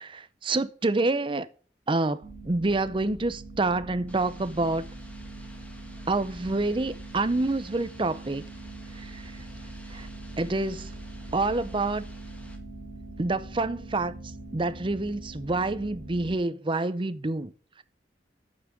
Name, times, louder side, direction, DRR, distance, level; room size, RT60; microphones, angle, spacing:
voice 1, 0.0-1.5 1.9-4.9 6.1-8.4 8.9-9.3 9.9-10.1 10.4-10.9 11.3-12.0 13.2-14.1 14.5-17.5, right 2 dB, 30° right, 0.6 m, -27 dB
sound 1, 2.2-16.4, right 2 dB, 70° right, 3.7 m, -42 dB
sound 2, 4.1-12.6, equal, 10° left, 1.7 m, -52 dB
8.7 x 5.9 x 7.6 m
head